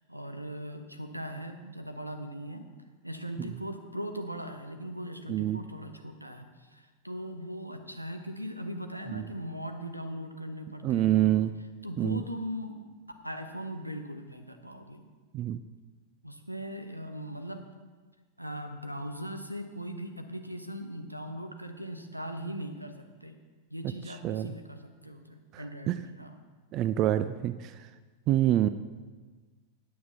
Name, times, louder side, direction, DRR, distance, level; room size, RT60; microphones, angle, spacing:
voice 1, 0.1-2.6 3.0-11.4 11.8-12.8 13.2-15.0 16.2-17.7 18.4-23.3 23.7-26.4, equal, 90° right, 6 dB, 0.8 m, -39 dB
voice 2, 5.3-5.6 9.1-9.2 10.8-11.5 12.0-12.2 15.3-15.6 24.2-24.5 25.5-26.0 26.7-27.7 28.3-28.7, right 13 dB, 35° right, 12 dB, 0.3 m, -26 dB
9.4 x 7.4 x 5.6 m, 1.4 s
figure-of-eight pair, 90°, 0 cm